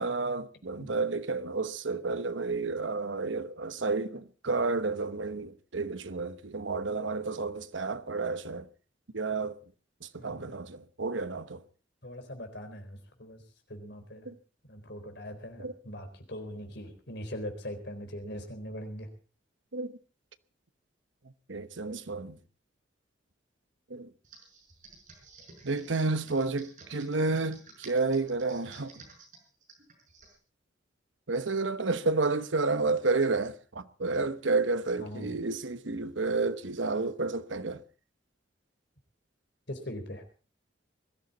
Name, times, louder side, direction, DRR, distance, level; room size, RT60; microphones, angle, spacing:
voice 1, 0.0-8.7 9.1-9.6 10.0-11.6 14.3-14.4 15.6-15.7 19.7-19.9 21.5-22.4 23.9-24.1 25.6-28.9 31.3-37.8, right 3 dB, 80° right, 1.1 m, -31 dB
voice 2, 10.2-10.6 12.0-13.4 13.7-14.3 14.7-19.1 35.0-35.3 39.7-40.2, equal, 60° left, 4.1 m, -41 dB
Computer keyboard, 24.2-30.4, right 4 dB, 45° right, 5.9 m, -53 dB
21.5 x 13.5 x 4.2 m
head